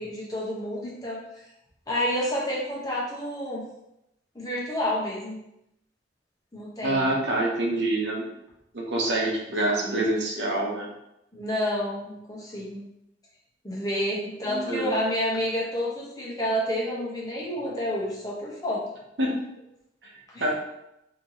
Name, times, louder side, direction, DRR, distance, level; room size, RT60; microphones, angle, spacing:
voice 1, 0.0-1.4 1.9-3.6 4.3-5.4 6.5-7.1 9.7-10.1 11.3-12.8 13.6-18.8 20.3-20.5, equal, 20° left, -5 dB, 1.0 m, -29 dB
voice 2, 6.8-8.2 8.7-10.9 14.5-14.9 19.2-19.3 20.0-20.1 20.4-20.5, right 1 dB, 70° right, -1 dB, 0.9 m, -26 dB
4.3 x 3.0 x 2.8 m, 0.85 s
head